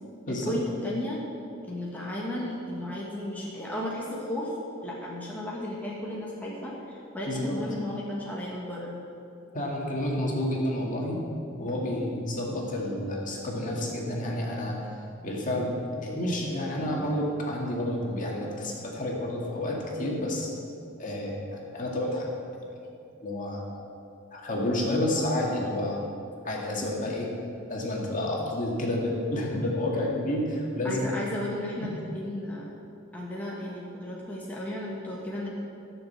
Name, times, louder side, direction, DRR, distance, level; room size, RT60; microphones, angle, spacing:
voice 1, 0.3-1.3 1.7-4.5 4.8-9.0 29.5-29.6 30.8-32.7 33.1-35.5, left 1 dB, 10° left, -5 dB, 1.6 m, -34 dB
voice 2, 7.3-7.6 9.5-11.2 11.6-14.9 15.2-20.5 21.0-22.3 23.2-23.7 24.3-26.0 26.4-27.3 27.7-31.1, left 1 dB, 40° left, -2 dB, 2.2 m, -30 dB
13.5 x 6.6 x 7.6 m, 2.7 s
head